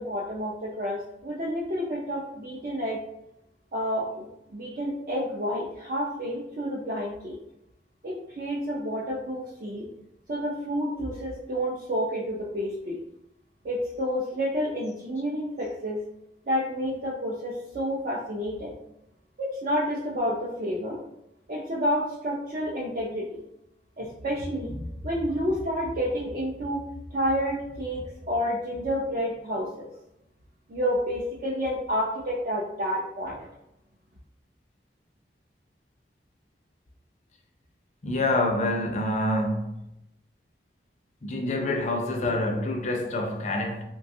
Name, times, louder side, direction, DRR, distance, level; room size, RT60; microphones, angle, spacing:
voice 1, 0.0-3.0 3.7-7.4 8.0-9.9 10.3-13.0 13.6-16.0 16.5-18.8 19.4-21.0 21.5-23.4 24.0-26.8 27.1-29.9 30.7-33.5, equal, 50° right, 0.5 m, -29 dB
voice 2, 38.0-39.8 41.2-43.8, left 1 dB, 40° left, 0.4 m, -27 dB
3.1 x 2.2 x 2.6 m
head